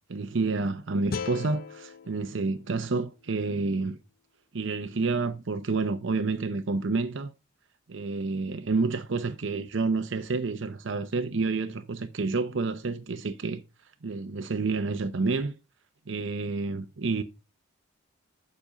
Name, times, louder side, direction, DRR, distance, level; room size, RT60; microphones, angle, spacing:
voice 1, 0.1-4.0 4.5-7.3 7.9-13.6 14.0-15.5 16.1-17.2, right 3 dB, 60° right, 0.6 m, -29 dB
sound 1, 1.1-4.2, left 5 dB, 45° left, 0.5 m, -40 dB
7.2 x 5.2 x 5.1 m
head